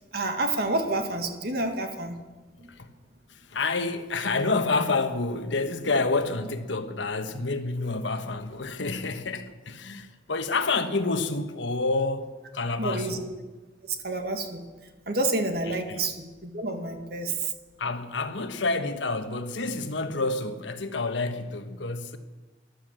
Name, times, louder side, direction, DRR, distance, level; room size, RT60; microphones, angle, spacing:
voice 1, 0.1-2.2 2.6-2.7 12.8-13.4 13.9-14.6 15.1-17.5, right 2 dB, 55° right, 1.8 m, -29 dB
voice 2, 3.3-13.3 15.7-16.1 17.8-22.2, left 3 dB, 80° left, 1.2 m, -28 dB
13.0 x 12.0 x 7.5 m
head